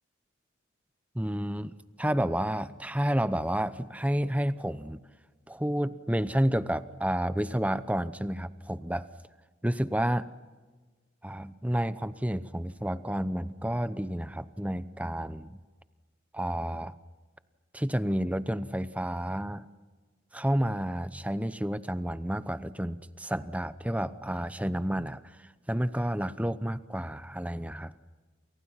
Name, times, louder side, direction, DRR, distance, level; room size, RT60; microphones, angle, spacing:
voice 1, 1.1-5.0 5.5-9.1 9.6-10.3 11.2-15.6 16.3-16.9 17.7-19.7 20.3-27.9, equal, 5° right, 13 dB, 0.8 m, -30 dB
28.5 x 28.5 x 5.8 m, 1.3 s
head